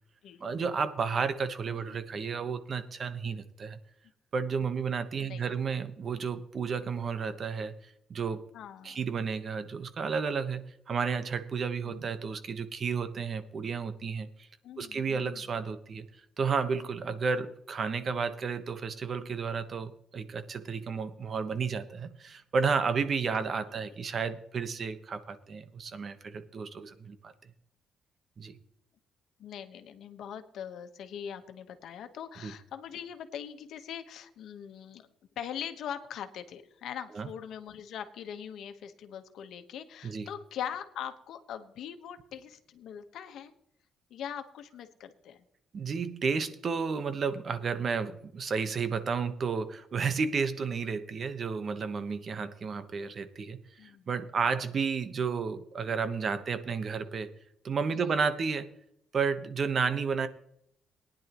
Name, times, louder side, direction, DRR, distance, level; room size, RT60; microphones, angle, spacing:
voice 1, 0.4-3.8 4.3-7.7 8.1-8.4 8.8-14.5 14.8-16.1 16.4-27.3 28.4-28.6 32.4-32.5 37.1-37.3 40.0-40.3 45.7-57.3 57.6-58.7 59.1-60.3, right 5 dB, 50° right, 11 dB, 1.1 m, -32 dB
voice 2, 1.7-2.0 5.2-5.5 8.5-9.0 11.8-12.0 14.6-15.4 23.7-23.8 29.4-35.1 35.4-43.5 44.1-45.4 53.8-54.0 57.9-58.1, left 9 dB, 75° left, 8 dB, 1.2 m, -42 dB
18.5 x 10.5 x 3.0 m, 0.75 s
cardioid pair, 90°, 0 cm